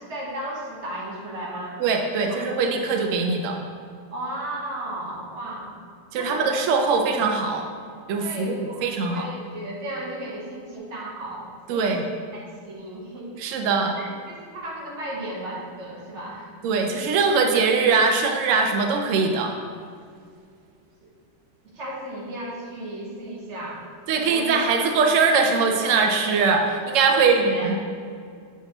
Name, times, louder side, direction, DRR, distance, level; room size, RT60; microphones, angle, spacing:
voice 1, 0.0-1.8 2.3-2.4 4.1-5.7 6.1-6.5 8.2-12.0 12.3-13.5 14.0-16.5 21.0-21.1 21.7-23.8 24.3-24.5 27.1-27.7, right 1 dB, 45° right, -4 dB, 1.3 m, -34 dB
voice 2, 1.8-3.6 6.1-7.7 8.1-9.3 11.7-12.0 13.4-13.9 16.6-19.5 24.1-27.8, right 4 dB, 85° right, 3 dB, 0.6 m, -22 dB
7.2 x 3.9 x 3.8 m, 2.2 s
omnidirectional pair, 1.9 m